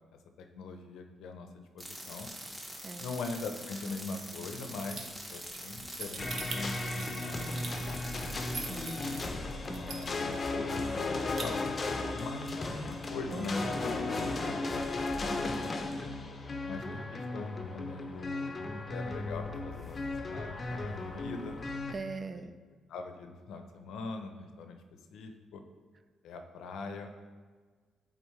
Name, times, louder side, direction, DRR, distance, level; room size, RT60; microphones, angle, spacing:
voice 1, 0.4-2.3 3.0-8.8 9.7-11.6 12.1-14.6 15.2-16.1 16.7-18.5 18.9-21.6 22.3-22.5 22.9-24.8 25.1-25.6 26.2-27.1, left 3 dB, 80° left, 6 dB, 0.6 m, -42 dB
sound 1, 1.8-9.3, equal, 10° right, 1.2 m, -44 dB
sound 2, 4.9-8.9 9.4-9.5 9.7-10.4 10.7-10.8 11.1-11.4, right 4 dB, 50° right, 0.9 m, -41 dB
sound 3, 6.2-21.9, left 2 dB, 35° left, 0.6 m, -35 dB
voice 2, 13.3-14.5 21.9-22.5, right 3 dB, 35° right, 11 dB, 0.4 m, -42 dB
8.1 x 3.8 x 3.2 m, 1.5 s
cardioid pair, 90°, 0 cm